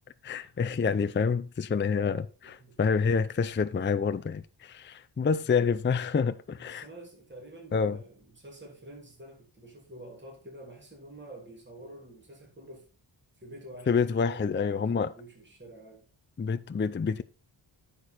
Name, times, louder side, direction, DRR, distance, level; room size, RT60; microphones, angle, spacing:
voice 1, 0.2-2.2 2.8-6.9 7.7-8.0 13.9-15.1 16.4-17.2, left 5 dB, 25° left, 0.4 m, -27 dB
voice 2, 1.8-2.8 6.5-12.9 13.3-16.1, right 1 dB, 20° right, 2.9 m, -48 dB
9.7 x 6.6 x 4.1 m
wide cardioid pair, 60°, 49 cm